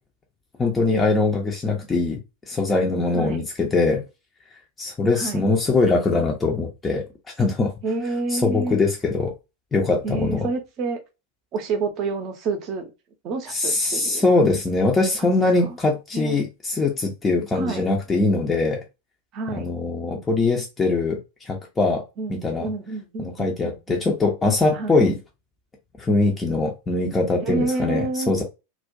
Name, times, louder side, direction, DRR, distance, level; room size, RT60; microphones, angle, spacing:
voice 1, 0.6-2.2 2.5-4.0 4.8-7.1 7.4-7.7 8.3-9.3 9.7-10.5 13.5-18.8 19.5-22.0 22.3-22.7 23.2-25.2 26.0-28.4, left 3 dB, 15° left, 0.5 m, -22 dB
voice 2, 7.8-8.8 10.0-11.0 11.5-12.9 13.2-14.2 15.4-15.5 16.1-16.4 17.5-17.8 19.3-19.7 22.2-24.1 24.7-25.0 27.4-28.4, right 3 dB, 35° right, 0.6 m, -28 dB
2.3 x 2.1 x 2.5 m
figure-of-eight pair, 90°, 0 cm